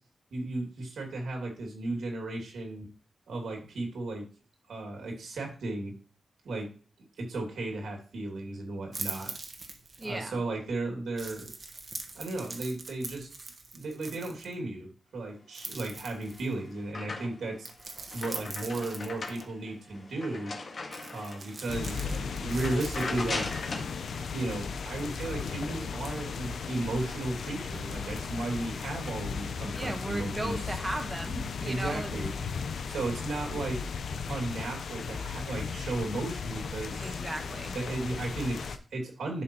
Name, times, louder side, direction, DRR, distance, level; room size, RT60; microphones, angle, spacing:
voice 1, 0.3-2.9 3.3-4.3 4.7-5.9 6.4-6.7 7.2-9.3 10.0-11.5 12.1-13.3 13.7-17.7 18.1-20.5 21.1-23.5 24.1-30.7 31.6-32.3 32.9-33.8 34.3-37.2 37.7-39.4, right 2 dB, 85° right, 1 dB, 2.3 m, -35 dB
sound 1, 8.9-10.2 11.2-14.5 15.5-16.6 17.6-19.4 20.9-23.2, right 3 dB, 45° right, 1.3 m, -42 dB
voice 2, 10.0-10.4 29.7-32.3 37.0-37.8, right 1 dB, 15° right, 6 dB, 1.2 m, -36 dB
sound 2, 16.0-17.6 17.9-21.6 22.0-22.2 22.5-23.9, left 3 dB, 50° left, 1.8 m, -39 dB
sound 3, 21.7-38.8, left 5 dB, 75° left, 0.7 m, -36 dB
11.0 x 5.9 x 3.0 m, 0.40 s
wide cardioid pair, 130°, 0 cm